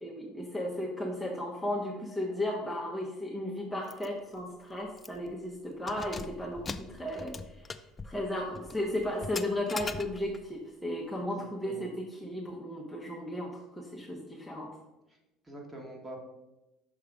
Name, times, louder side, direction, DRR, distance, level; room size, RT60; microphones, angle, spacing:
voice 1, 0.0-14.8, left 1 dB, 5° left, -3 dB, 0.9 m, -35 dB
Keys jangling, 3.9-4.1 4.4-4.5 5.0-5.3 5.7-10.5, left 4 dB, 25° left, 0.3 m, -42 dB
voice 2, 11.2-11.9 15.5-16.2, right 1 dB, 20° right, 0 dB, 1.6 m, -45 dB
6.0 x 3.6 x 4.8 m, 0.99 s
supercardioid pair, 100°, 0 cm